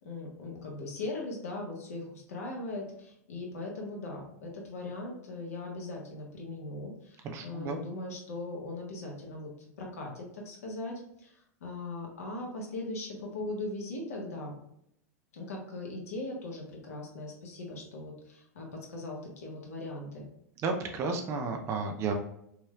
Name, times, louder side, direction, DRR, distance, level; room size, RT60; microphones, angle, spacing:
voice 1, 0.0-9.5 9.8-14.6 15.3-20.3, left 2 dB, 65° left, -1 dB, 1.5 m, -39 dB
voice 2, 7.2-7.8 20.6-22.1, right 4 dB, 30° right, 4 dB, 0.7 m, -32 dB
5.6 x 3.1 x 2.4 m, 0.75 s
figure-of-eight pair, 90°, 9 cm